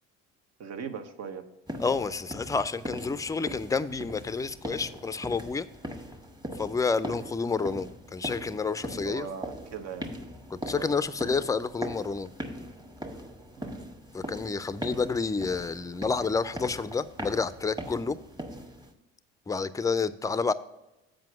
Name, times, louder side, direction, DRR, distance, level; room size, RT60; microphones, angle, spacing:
voice 1, 0.6-1.4 8.9-10.1 10.7-11.0 13.6-13.9, right 6 dB, 60° right, 7 dB, 1.0 m, -39 dB
sound 1, 1.7-18.9, equal, 15° right, 1.2 m, -40 dB
voice 2, 1.8-5.7 6.6-9.3 10.5-12.3 14.1-18.2 19.5-20.5, left 4 dB, 10° left, 14 dB, 0.4 m, -29 dB
7.6 x 5.2 x 6.0 m, 0.96 s
supercardioid pair, 75°, 29 cm